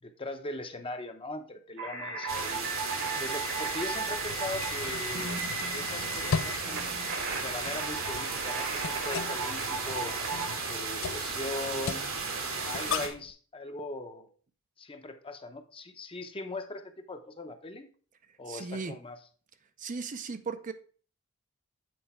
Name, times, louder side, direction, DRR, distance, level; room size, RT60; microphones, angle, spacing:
voice 1, 0.0-2.7 3.2-5.4 5.7-6.9 7.3-10.2 10.7-12.0 12.7-14.3 14.8-17.9 18.4-19.2, left 2 dB, 25° left, 0.7 m, -40 dB
sound 1, 1.8-10.5, right 2 dB, 60° right, 1.3 m, -36 dB
sound 2, 2.3-13.1, right 4 dB, 80° right, 1.7 m, -35 dB
sound 3, 4.2-13.3, left 6 dB, 65° left, 0.4 m, -39 dB
voice 2, 18.5-18.9 19.8-20.7, right 4 dB, 40° right, 0.5 m, -36 dB
7.8 x 4.5 x 4.3 m
head